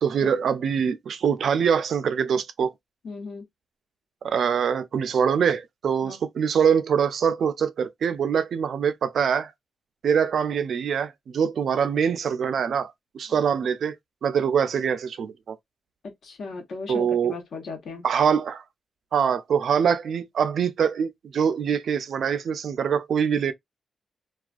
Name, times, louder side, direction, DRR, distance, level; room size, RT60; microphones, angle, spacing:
voice 1, 0.0-2.7 4.2-9.5 10.0-13.9 14.2-15.6 16.9-17.4 18.0-18.6 19.1-23.5, right 7 dB, 65° right, 0.3 m, -24 dB
voice 2, 3.0-3.4 6.0-6.2 16.0-18.1, left 4 dB, 65° left, 1.0 m, -37 dB
2.4 x 2.3 x 2.3 m
wide cardioid pair, 140°, 0 cm